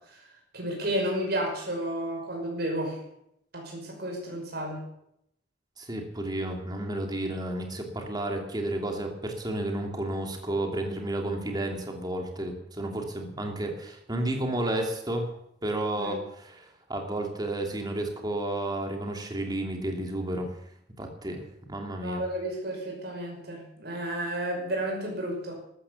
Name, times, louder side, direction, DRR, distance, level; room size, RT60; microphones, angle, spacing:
voice 1, 0.5-3.0 3.5-4.8 16.0-16.2 22.0-25.5, right 1 dB, 60° right, 0 dB, 5.7 m, -32 dB
voice 2, 5.8-15.3 15.6-20.5 21.0-22.2, right 1 dB, 20° right, 3 dB, 2.7 m, -32 dB
13.5 x 13.0 x 7.1 m, 0.77 s
head